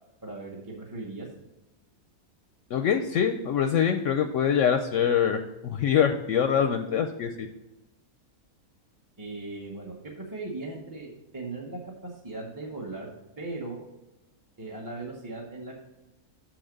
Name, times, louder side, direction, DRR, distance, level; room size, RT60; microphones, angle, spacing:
voice 1, 0.2-1.3 9.2-13.1 13.4-13.8 14.6-15.8, right 2 dB, 15° right, -3 dB, 0.8 m, -38 dB
voice 2, 2.7-7.5, left 8 dB, 70° left, 7 dB, 0.8 m, -24 dB
6.4 x 6.0 x 5.1 m, 0.97 s
omnidirectional pair, 1.5 m